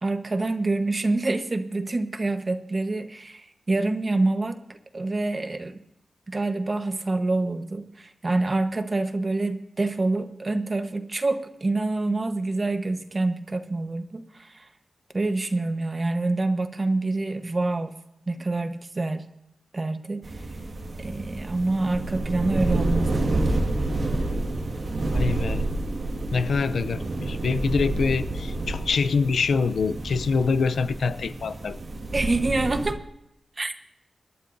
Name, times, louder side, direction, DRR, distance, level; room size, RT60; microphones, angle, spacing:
voice 1, 0.0-4.6 4.9-5.8 6.3-14.7 15.1-17.9 18.3-19.3 19.7-20.2 21.0-23.4 32.1-33.0 33.6-33.7, right 2 dB, 35° right, 7 dB, 1.2 m, -26 dB
sound 1, 20.2-32.9, right 2 dB, 55° right, 1.8 m, -29 dB
voice 2, 25.0-25.6 26.3-31.8, left 5 dB, 90° left, 13 dB, 0.6 m, -25 dB
27.0 x 12.0 x 2.7 m, 0.83 s
wide cardioid pair, 120°, 0 cm